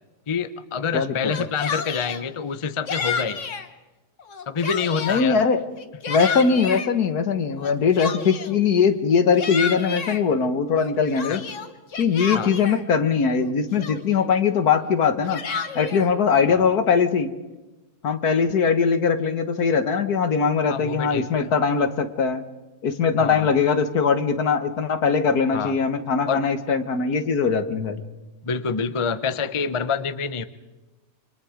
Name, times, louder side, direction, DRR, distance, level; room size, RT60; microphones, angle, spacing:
voice 1, 0.3-3.5 4.5-5.4 11.3-11.4 12.3-12.5 16.5-16.7 20.7-21.5 23.2-23.5 25.5-25.8 26.3-26.4 28.4-30.4, left 6 dB, 25° left, 12 dB, 0.7 m, -27 dB
voice 2, 0.9-1.3 5.0-5.7 6.1-11.4 12.0-15.4 15.8-17.3 18.0-22.4 22.8-28.0, left 5 dB, 70° left, 10 dB, 1.9 m, -21 dB
Yell, 1.2-2.2 2.9-3.7 4.2-5.3 5.8-6.9 7.6-8.6 9.1-10.2 10.7-12.8 13.4-13.5 13.8-14.3 15.0-16.1, left 5 dB, 50° left, 1.6 m, -30 dB
28.5 x 25.5 x 5.1 m, 1.1 s
omnidirectional pair, 1.7 m